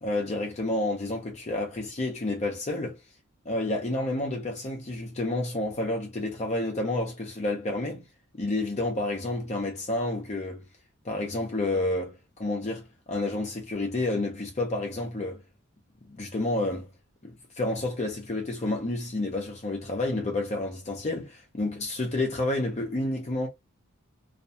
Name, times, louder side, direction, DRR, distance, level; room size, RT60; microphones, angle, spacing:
voice 1, 0.0-3.0 3.5-8.0 8.4-10.6 11.0-15.4 16.1-16.9 17.2-23.5, left 2 dB, 30° left, 0.5 m, -30 dB
2.4 x 2.2 x 2.6 m
head